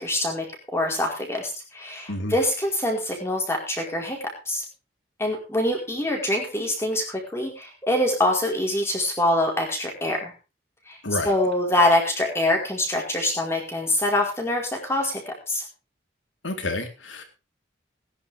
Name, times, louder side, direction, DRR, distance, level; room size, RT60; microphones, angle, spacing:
voice 1, 0.0-4.2 4.5-4.6 5.2-10.3 10.9-11.0 11.2-15.6, left 1 dB, 15° left, 0 dB, 4.7 m, -25 dB
voice 2, 16.4-17.2, left 2 dB, 90° left, 5 dB, 3.8 m, -29 dB
20.0 x 10.5 x 3.6 m, 0.31 s
head